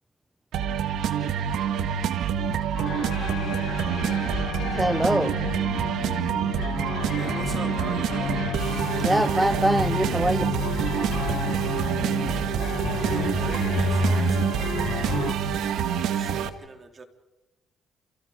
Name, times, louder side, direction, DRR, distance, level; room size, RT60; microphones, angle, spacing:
sound 1, 0.5-16.5, right 8 dB, 80° right, 1.7 m, -27 dB
sound 2, 2.7-15.3, left 5 dB, 70° left, 3.7 m, -31 dB
voice 1, 4.7-5.4 9.0-10.4, right 1 dB, 5° right, 12 dB, 0.8 m, -23 dB
voice 2, 7.2-8.5 12.9-14.6 14.9-15.3 15.6-17.0, right 4 dB, 40° right, 5 dB, 3.4 m, -41 dB
30.0 x 29.5 x 5.1 m, 1.0 s
cardioid pair, 90°, 0 cm